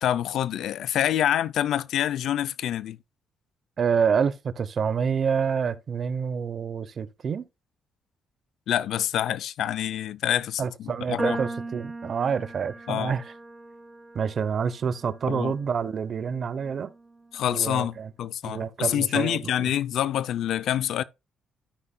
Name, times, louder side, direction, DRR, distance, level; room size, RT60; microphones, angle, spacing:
voice 1, 0.0-3.0 8.7-11.4 12.9-13.1 15.3-15.5 17.3-21.0, left 11 dB, 75° left, 0.5 m, -27 dB
voice 2, 3.8-7.5 10.6-13.2 14.1-16.9 17.5-18.1 18.4-19.7, right 6 dB, 50° right, 0.8 m, -27 dB
sound 1, 11.2-17.5, right 2 dB, 15° right, 1.2 m, -39 dB
13.0 x 5.5 x 2.3 m
cardioid pair, 90°, 0 cm